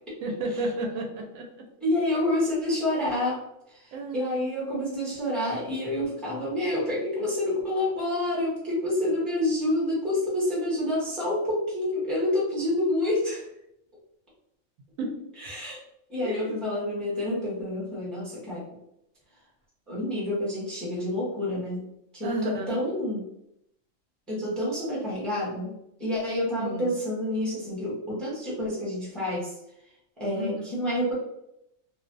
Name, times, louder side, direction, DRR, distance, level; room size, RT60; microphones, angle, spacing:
voice 1, 0.2-1.5 3.9-4.4 15.0-15.1 16.2-16.5 22.2-22.8 26.6-26.9 30.3-30.7, right 1 dB, 80° right, 1 dB, 1.0 m, -32 dB
voice 2, 1.8-3.4 3.7-13.4 15.4-15.8 16.1-18.6 19.9-21.9 22.1-23.3 24.3-25.7 26.0-29.5 30.2-31.1, left 1 dB, ahead, -6 dB, 0.7 m, -28 dB
2.6 x 2.0 x 2.5 m, 0.80 s
omnidirectional pair, 1.4 m